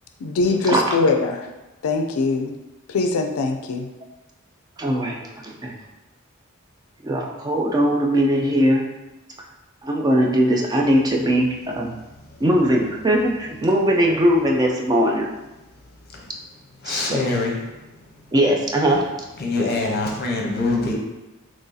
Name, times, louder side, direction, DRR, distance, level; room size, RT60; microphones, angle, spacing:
voice 1, 0.2-1.4 1.8-2.5 2.9-3.9, left 3 dB, 75° left, 5 dB, 0.4 m, -22 dB
voice 2, 4.8-5.2 5.6-5.7 7.0-8.9 9.8-11.9 12.4-15.3 16.9-17.2 18.3-19.0, equal, 20° right, 0 dB, 0.3 m, -20 dB
voice 3, 16.8-18.0 18.8-19.1 19.4-20.9, left 2 dB, 45° left, 0 dB, 0.7 m, -25 dB
3.1 x 2.7 x 3.8 m, 1.0 s
head